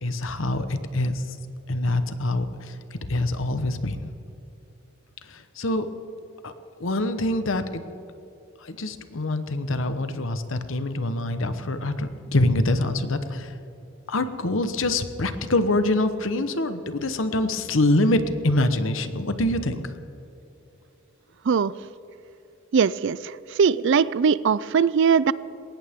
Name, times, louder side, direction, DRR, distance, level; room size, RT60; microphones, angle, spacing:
voice 1, 0.0-1.2 1.7-4.1 5.3-5.9 6.4-6.5 6.8-7.7 8.6-13.5 14.1-20.0, left 1 dB, 65° left, 10 dB, 1.1 m, -25 dB
voice 2, 22.7-23.2 23.6-25.3, right 6 dB, 60° right, 19 dB, 0.4 m, -20 dB
21.0 x 18.5 x 3.7 m, 2.8 s
head